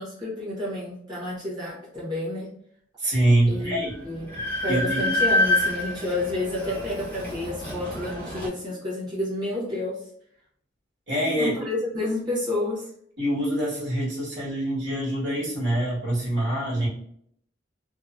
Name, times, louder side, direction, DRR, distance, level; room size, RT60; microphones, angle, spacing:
voice 1, 0.0-2.5 3.5-4.3 4.6-10.0 11.4-12.9, left 2 dB, 25° right, -8 dB, 1.0 m, -30 dB
voice 2, 3.0-3.9 4.7-5.0 11.1-11.5 13.2-16.9, right 1 dB, 70° right, -6 dB, 1.5 m, -24 dB
Train, 3.5-3.6 3.9-8.5, left 1 dB, 10° left, 0.8 m, -27 dB
2.8 x 2.1 x 2.4 m, 0.67 s
head